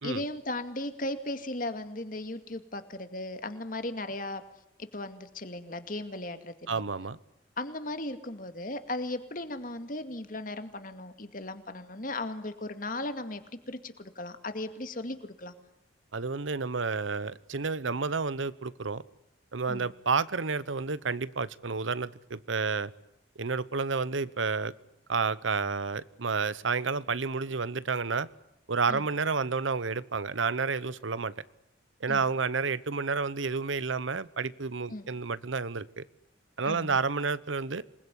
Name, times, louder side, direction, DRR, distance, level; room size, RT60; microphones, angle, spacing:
voice 1, 0.0-4.4 4.8-6.8 7.6-13.4 13.7-15.5 19.7-19.9 28.9-29.0 32.1-32.2 34.9-35.1 36.6-37.0, left 2 dB, 45° left, 9 dB, 2.2 m, -36 dB
voice 2, 6.7-7.2 16.1-19.0 19.5-22.9 23.4-24.7 25.1-28.3 28.7-31.3 32.0-36.0 36.6-37.8, right 4 dB, 85° right, 18 dB, 0.9 m, -30 dB
27.0 x 21.0 x 10.0 m, 0.83 s
head